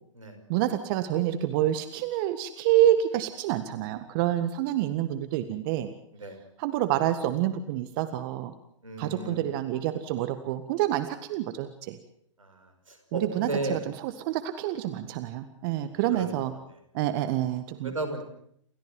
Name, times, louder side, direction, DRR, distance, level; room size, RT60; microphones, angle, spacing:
voice 1, 0.5-5.9 6.6-8.5 9.0-12.0 13.1-16.5 16.9-17.9, right 12 dB, 45° right, 9 dB, 1.7 m, -27 dB
voice 2, 8.8-9.4 12.4-13.8 16.1-16.6 17.8-18.2, right 2 dB, 90° right, 7 dB, 5.4 m, -34 dB
29.0 x 14.5 x 7.7 m, 0.70 s
hypercardioid pair, 115°, 16 cm